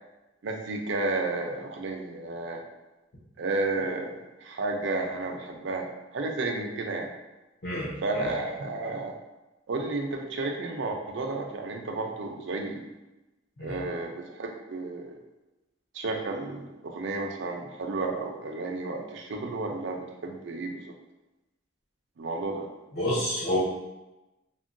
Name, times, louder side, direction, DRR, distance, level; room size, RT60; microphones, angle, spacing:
voice 1, 0.4-2.6 3.4-7.1 8.0-9.2 9.7-12.8 13.6-15.1 15.9-20.8 22.2-22.7, right 2 dB, 65° right, 2 dB, 0.4 m, -32 dB
voice 2, 7.6-8.3 13.6-13.8 22.9-23.6, left 1 dB, 55° left, -10 dB, 0.8 m, -29 dB
3.5 x 2.2 x 2.5 m, 1.0 s
head